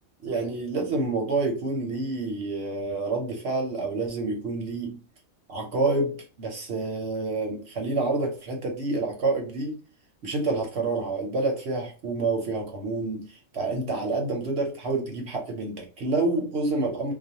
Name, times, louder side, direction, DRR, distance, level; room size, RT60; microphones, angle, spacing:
voice 1, 0.2-5.0 5.5-9.8 10.2-17.1, right 3 dB, 55° right, 0.9 m, -28 dB
2.4 x 2.2 x 2.8 m
omnidirectional pair, 1.5 m